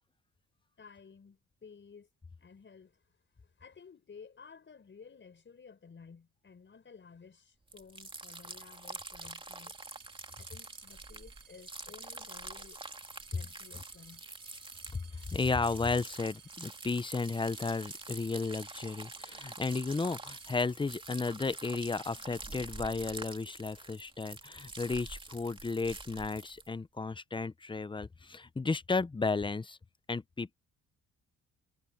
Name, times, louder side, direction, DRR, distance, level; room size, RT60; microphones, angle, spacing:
voice 1, 0.8-2.1 2.4-3.0 3.6-9.8 10.4-12.8 13.3-14.2, left 5 dB, 40° left, 5.7 m, -54 dB
sound 1, 7.7-26.7, right 2 dB, 15° right, 2.6 m, -46 dB
sound 2, 9.7-21.4 22.1-22.7, right 8 dB, 60° right, 4.4 m, -59 dB
voice 2, 15.3-29.8 30.1-30.6, left 4 dB, 15° left, 0.7 m, -33 dB
cardioid pair, 90°, 30 cm